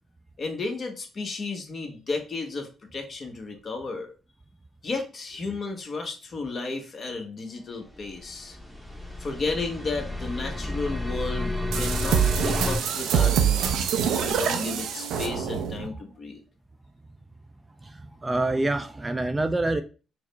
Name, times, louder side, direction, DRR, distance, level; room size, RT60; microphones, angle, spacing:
voice 1, 0.4-4.1 4.8-8.6 9.2-16.4, left 3 dB, 45° left, 0.9 m, -33 dB
sound 1, 8.0-12.8, left 1 dB, ahead, 0.8 m, -31 dB
sound 2, 11.7-15.9, right 8 dB, 85° right, 0.4 m, -25 dB
voice 2, 17.8-19.8, right 2 dB, 15° right, 0.3 m, -27 dB
4.7 x 2.0 x 3.1 m
cardioid pair, 90°, 0 cm